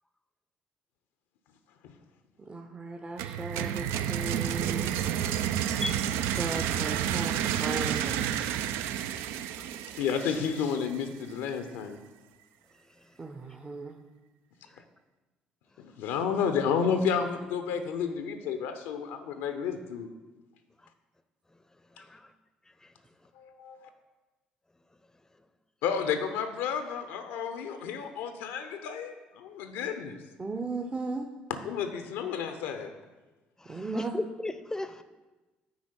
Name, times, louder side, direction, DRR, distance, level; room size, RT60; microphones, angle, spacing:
voice 1, 2.4-4.9 6.2-8.3 13.2-13.9 30.4-31.3 33.6-34.1, right 3 dB, 25° right, 4 dB, 0.7 m, -36 dB
sound 1, 3.2-11.0, right 10 dB, 65° right, 0.3 m, -30 dB
voice 2, 10.0-12.0 15.8-20.1 23.4-23.9 25.8-30.2 31.6-32.9, left 6 dB, 65° left, 8 dB, 0.6 m, -31 dB
voice 3, 22.0-22.3 33.6-35.0, left 2 dB, 15° left, 11 dB, 0.6 m, -35 dB
9.5 x 4.4 x 4.3 m, 1.2 s
figure-of-eight pair, 50°, 4 cm